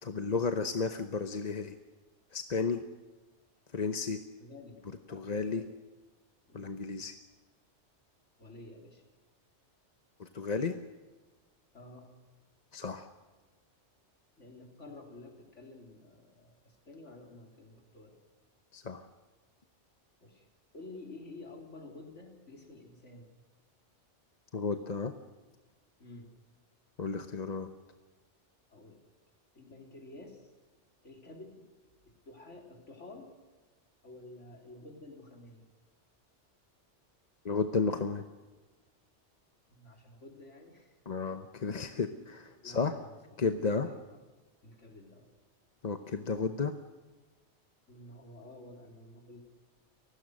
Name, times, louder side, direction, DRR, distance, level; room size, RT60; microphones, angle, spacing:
voice 1, 0.0-1.8 2.3-2.9 3.7-4.2 5.1-5.6 6.5-7.1 10.2-10.8 12.7-13.1 18.7-19.1 24.5-25.1 27.0-27.7 37.4-38.2 41.1-43.0 43.4-43.9 45.8-46.8, left 4 dB, 40° left, 8 dB, 0.9 m, -33 dB
voice 2, 4.4-4.8 5.1-5.8 6.5-6.6 8.4-9.1 11.7-12.1 14.4-18.2 20.2-20.5 20.7-23.3 26.0-26.3 28.7-29.0 29.5-30.5 31.0-31.7 32.1-33.3 34.0-35.7 39.7-41.0 42.6-43.2 43.8-44.2 44.6-45.4 47.9-49.4, left 2 dB, 85° left, 1 dB, 3.9 m, -51 dB
30.0 x 16.5 x 6.4 m, 1.3 s
omnidirectional pair, 1.2 m